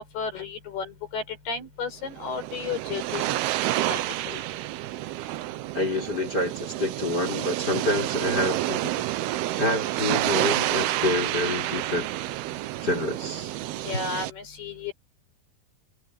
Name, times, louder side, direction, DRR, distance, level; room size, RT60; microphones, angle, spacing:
voice 1, 0.0-3.3 3.8-4.0 4.3-4.4 13.8-14.9, left 5 dB, 80° left, 8.1 m, -33 dB
sound 1, 2.1-14.3, right 15 dB, 85° right, 2.8 m, -29 dB
voice 2, 5.7-8.9 9.6-12.1 12.8-13.5, left 2 dB, 25° left, 5.9 m, -27 dB
omnidirectional pair, 4.5 m